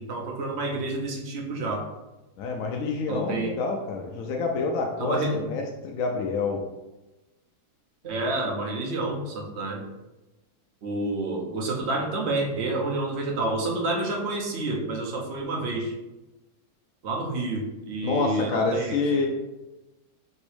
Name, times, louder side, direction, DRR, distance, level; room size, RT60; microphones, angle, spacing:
voice 1, 0.0-1.8 3.1-3.5 5.0-5.4 8.0-9.8 10.8-15.9 17.0-19.2, right 2 dB, 50° right, 0 dB, 0.9 m, -29 dB
voice 2, 2.4-6.7 18.0-19.3, left 4 dB, 70° left, 1 dB, 0.9 m, -27 dB
5.3 x 3.0 x 3.3 m, 1.0 s
omnidirectional pair, 1.8 m